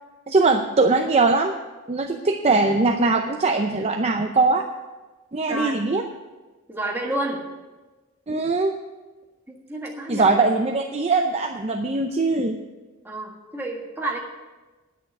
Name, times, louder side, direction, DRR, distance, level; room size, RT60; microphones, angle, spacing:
voice 1, 0.3-1.5 1.9-4.6 5.3-6.0 8.3-8.7 10.1-12.6, right 3 dB, 30° right, 4 dB, 0.6 m, -21 dB
voice 2, 5.5-5.8 6.7-7.4 9.5-10.3 13.0-14.2, right 1 dB, 10° right, -1 dB, 1.9 m, -29 dB
10.5 x 6.7 x 9.0 m, 1.2 s
head